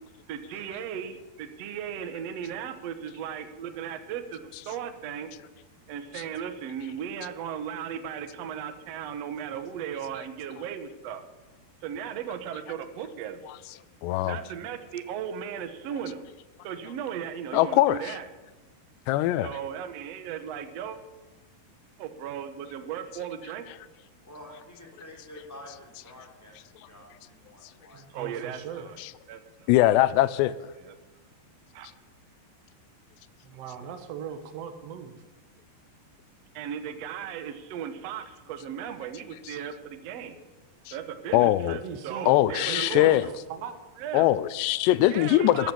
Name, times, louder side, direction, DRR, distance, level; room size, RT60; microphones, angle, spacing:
voice 1, 0.3-5.3 5.9-11.2 11.8-13.5 14.2-16.3 16.6-18.3 19.4-21.0 22.0-23.7 28.1-29.0 29.3-29.4 30.8-30.9 31.7-31.9 36.5-40.4 40.9-43.4 44.0-44.3 45.1-45.7, right 8 dB, 90° right, 8 dB, 1.4 m, -36 dB
voice 2, 14.0-14.4 17.5-18.0 19.1-19.5 29.0-29.1 29.7-30.5 41.3-41.8 42.3-43.2 44.1-45.7, left 15 dB, 85° left, 17 dB, 2.8 m, -21 dB
voice 3, 24.2-28.0, left 1 dB, 5° left, 0 dB, 3.3 m, -48 dB
voice 4, 27.9-28.8 33.4-35.1 41.8-43.7 45.5-45.7, right 7 dB, 65° right, 7 dB, 1.6 m, -39 dB
14.0 x 11.5 x 7.0 m, 1.2 s
omnidirectional pair, 4.9 m